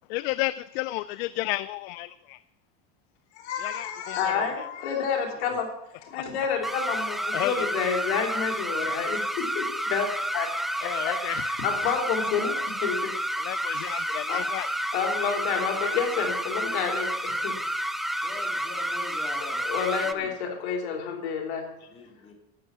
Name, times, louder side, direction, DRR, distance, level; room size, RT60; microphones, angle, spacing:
voice 1, 0.1-2.4 3.6-4.7 7.3-7.8 10.8-11.5 13.4-14.7, left 18 dB, 70° left, 0.5 m, -32 dB
voice 2, 3.4-5.7 6.0-10.5 10.8-13.1 14.3-14.4 14.9-17.6 19.7-21.7, left 6 dB, 90° left, 3.5 m, -29 dB
sound 1, 6.6-20.1, equal, ahead, 0.5 m, -30 dB
voice 3, 18.2-19.6 20.0-20.3 21.9-22.3, left 3 dB, 20° left, 3.2 m, -43 dB
12.5 x 8.9 x 7.5 m
supercardioid pair, 140°, 32 cm